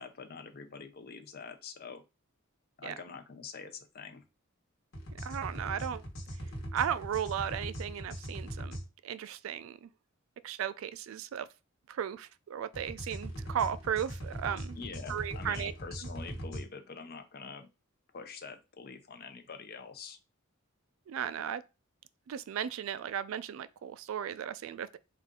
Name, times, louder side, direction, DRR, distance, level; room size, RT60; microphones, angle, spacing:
voice 1, 0.0-2.0 2.8-4.2 14.8-17.7 18.1-20.2, left 5 dB, 45° left, 0.6 m, -45 dB
sound 1, 4.9-8.8 12.7-16.6, equal, 65° left, 1.3 m, -40 dB
voice 2, 5.2-6.0 6.7-8.8 9.0-9.9 10.4-11.5 11.9-14.8 15.1-15.7 21.1-21.6 22.3-25.0, right 9 dB, 70° right, 0.3 m, -35 dB
4.1 x 2.5 x 3.7 m
head